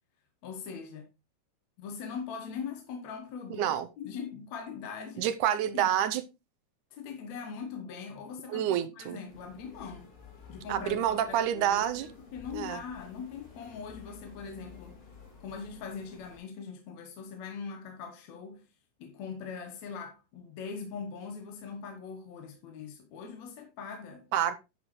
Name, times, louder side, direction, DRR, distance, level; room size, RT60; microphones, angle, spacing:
voice 1, 0.4-1.1 1.8-5.3 5.7-6.0 6.9-10.1 10.5-15.0 15.4-18.7 19.0-24.3, left 6 dB, 65° left, 2.1 m, -41 dB
voice 2, 3.5-3.9 5.2-6.2 8.5-9.2 10.7-12.1 12.5-12.8 24.3-24.6, right 10 dB, 80° right, 2.0 m, -28 dB
sound 1, 9.3-16.4, left 5 dB, 80° left, 5.7 m, -52 dB
11.0 x 6.7 x 3.0 m
omnidirectional pair, 3.8 m